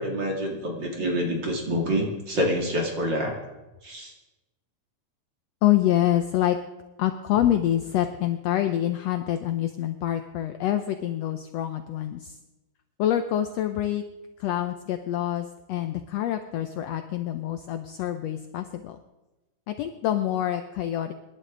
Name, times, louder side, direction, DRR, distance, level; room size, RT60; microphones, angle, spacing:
voice 1, 0.0-3.3 3.8-4.1, equal, 40° right, 0 dB, 2.9 m, -27 dB
voice 2, 5.6-6.6 7.0-12.4 13.0-14.0 14.4-19.0 19.7-21.1, left 12 dB, 75° left, 8 dB, 1.6 m, -26 dB
25.5 x 11.5 x 3.8 m, 1.1 s
omnidirectional pair, 3.6 m